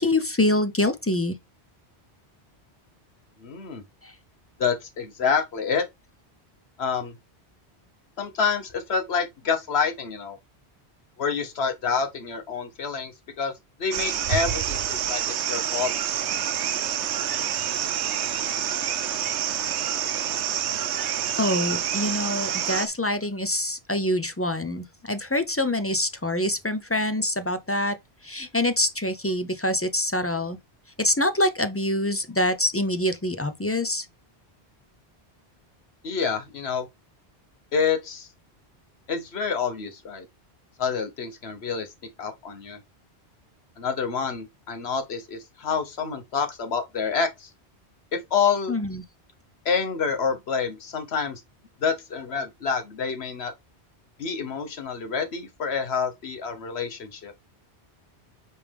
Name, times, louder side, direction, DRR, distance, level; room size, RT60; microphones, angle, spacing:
voice 1, 0.0-1.4 21.4-28.0 28.2-30.6 31.0-34.1 48.7-49.0, left 1 dB, 20° left, 0.3 m, -25 dB
voice 2, 3.4-3.8 4.6-5.8 6.8-7.1 8.2-10.4 11.2-13.5 13.8-15.9 36.0-36.9 37.7-38.3 39.1-40.2 40.8-41.9 42.2-42.8 43.8-47.5 48.1-48.7 49.6-51.4 51.8-53.5 54.2-57.3, left 6 dB, 70° left, 1.3 m, -27 dB
sound 1, 13.9-22.9, right 9 dB, 85° right, 1.0 m, -27 dB
8.4 x 3.4 x 3.4 m
omnidirectional pair, 1.1 m